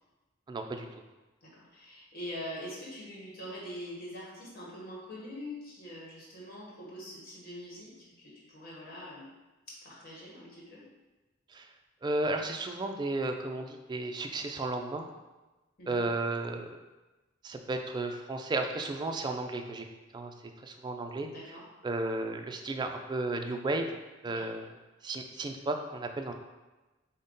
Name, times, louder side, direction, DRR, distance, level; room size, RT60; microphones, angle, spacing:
voice 1, 0.5-0.9 11.5-11.7 12.0-15.1 15.9-16.8 17.4-19.9 20.1-20.3 20.6-21.3 21.8-23.9 24.2-24.7 25.0-26.3, right 2 dB, 25° right, 5 dB, 0.3 m, -33 dB
voice 2, 1.4-9.3 9.7-10.8 15.8-16.1 21.3-21.7 24.3-24.5, left 1 dB, 50° left, -5 dB, 1.2 m, -44 dB
5.2 x 2.1 x 3.8 m, 1.1 s
head